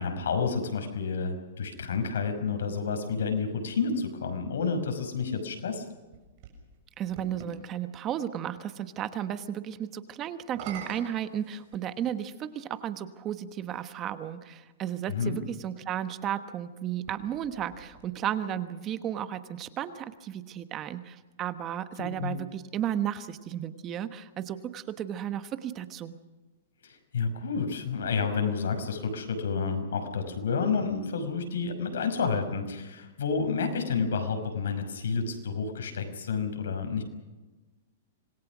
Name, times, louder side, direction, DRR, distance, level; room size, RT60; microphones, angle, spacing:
voice 1, 0.0-5.8 15.1-15.4 22.0-22.3 26.8-37.0, left 5 dB, 90° left, 6 dB, 5.6 m, -30 dB
sound 1, 5.7-7.6 10.4-12.2 13.1-13.2 16.9-18.5, right 7 dB, 40° right, 6.9 m, -46 dB
voice 2, 7.0-26.2, right 10 dB, 25° right, 11 dB, 1.2 m, -34 dB
26.5 x 21.0 x 6.2 m, 1.2 s
hypercardioid pair, 155°, 0 cm